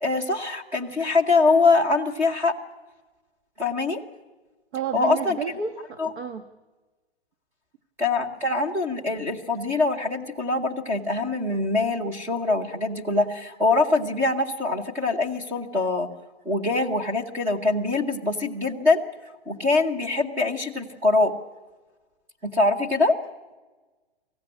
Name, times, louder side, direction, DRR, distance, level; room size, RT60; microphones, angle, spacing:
voice 1, 0.0-2.5 3.6-4.0 4.9-5.4 6.0-6.1 8.0-16.1 16.4-19.0 19.5-21.3 22.4-23.1, left 3 dB, 5° right, 3 dB, 1.0 m, -23 dB
voice 2, 4.7-6.5, right 7 dB, 75° right, 8 dB, 1.7 m, -31 dB
24.0 x 15.5 x 9.8 m, 1.3 s
hypercardioid pair, 175°, 33 cm